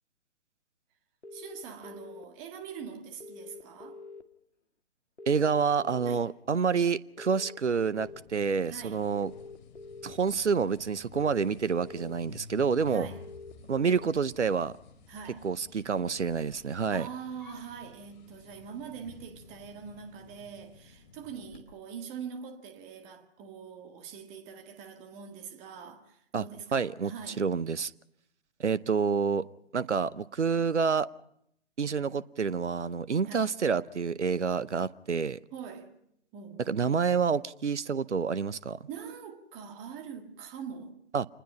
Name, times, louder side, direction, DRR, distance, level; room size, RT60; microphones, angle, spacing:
sound 1, 1.2-2.2 3.2-4.2 5.2-6.2 7.2-8.2 9.1-10.2 11.1-12.1 13.1-14.1, left 3 dB, 80° left, 1.9 m, -46 dB
voice 1, 1.3-4.0 6.0-6.3 8.7-9.1 12.9-13.2 15.1-15.5 16.9-27.5 33.3-33.5 35.5-35.9 36.3-37.1 38.9-41.0, right 7 dB, 20° right, 1.8 m, -43 dB
voice 2, 5.3-9.3 10.0-13.1 13.7-14.7 15.4-17.1 26.3-26.4 26.7-27.1 27.4-27.9 28.6-29.5 29.7-31.1 31.8-35.4 36.7-38.8 41.1-41.3, right 6 dB, 80° right, 0.7 m, -28 dB
sound 2, 8.0-21.6, left 5 dB, 40° left, 4.2 m, -53 dB
27.5 x 20.5 x 5.6 m
figure-of-eight pair, 135°, 34 cm